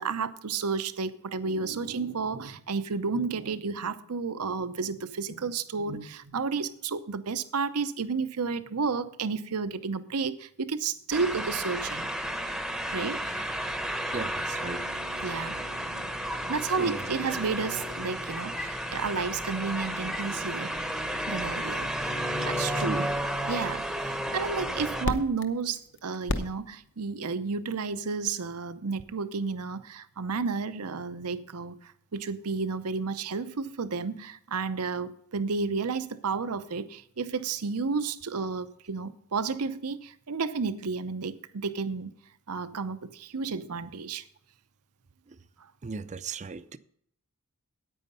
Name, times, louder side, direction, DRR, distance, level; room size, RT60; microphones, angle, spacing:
voice 1, 0.0-12.1 12.9-13.5 15.2-16.0 16.5-20.8 21.3-21.9 22.4-23.0 23.5-42.1 42.5-44.2, right 4 dB, 85° right, 0.7 m, -32 dB
sound 1, 11.1-25.1, equal, ahead, 0.8 m, -32 dB
sound 2, 12.7-27.1, left 1 dB, 55° left, 0.9 m, -43 dB
voice 2, 14.1-14.9 16.8-17.0 22.6-23.1 45.3-45.4 45.8-46.8, right 4 dB, 30° right, 0.5 m, -36 dB
9.3 x 9.2 x 5.4 m
head